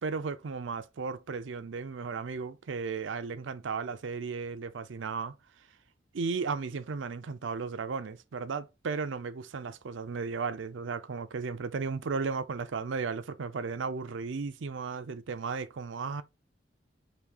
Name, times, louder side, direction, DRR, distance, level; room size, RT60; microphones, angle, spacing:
voice 1, 0.0-5.3 6.1-16.2, right 5 dB, 80° right, 0.5 m, -35 dB
5.1 x 2.7 x 3.5 m
head